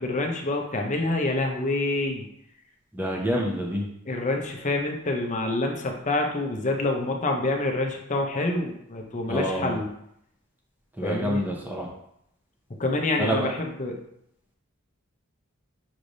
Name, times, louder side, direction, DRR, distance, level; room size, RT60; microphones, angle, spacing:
voice 1, 0.0-2.3 4.1-9.9 11.0-11.4 12.7-14.0, left 2 dB, 35° left, 3 dB, 0.6 m, -27 dB
voice 2, 2.9-3.9 9.3-9.8 11.0-11.9 13.2-13.5, equal, 10° right, -2 dB, 0.8 m, -27 dB
6.2 x 3.3 x 2.6 m, 0.76 s
head